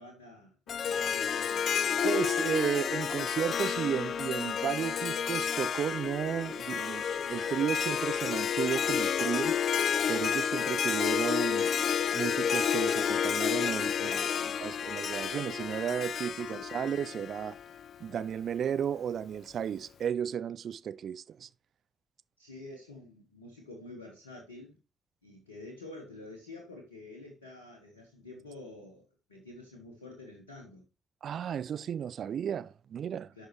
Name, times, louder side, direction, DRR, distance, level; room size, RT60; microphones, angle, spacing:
voice 1, 0.0-1.6 8.1-8.2 14.0-14.7 16.4-16.7 22.4-24.8 25.2-30.9 33.3-33.5, left 2 dB, 85° left, 1.2 m, -48 dB
Harp, 0.7-18.0, left 8 dB, 55° left, 0.3 m, -30 dB
voice 2, 2.0-9.6 10.1-11.7 12.1-14.2 14.6-17.6 18.0-21.5 31.2-33.3, right 8 dB, 55° right, 0.5 m, -33 dB
11.5 x 5.4 x 3.1 m
figure-of-eight pair, 40°, 0 cm